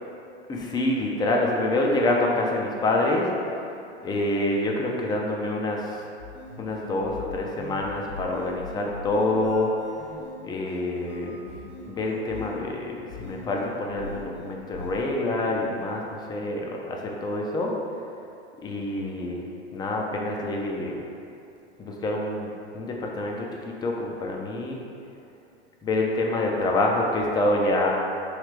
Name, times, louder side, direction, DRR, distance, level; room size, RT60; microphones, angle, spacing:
voice 1, 0.5-3.3 4.0-6.0 6.6-9.8 10.4-11.4 11.8-17.7 18.6-19.4 19.7-21.0 21.8-23.5 23.8-24.8 25.8-27.9, left 2 dB, 15° left, 0 dB, 0.4 m, -26 dB
sound 1, 6.2-15.0, left 3 dB, 80° left, 1.4 m, -42 dB
3.2 x 3.2 x 4.6 m, 2.7 s
hypercardioid pair, 95°, 34 cm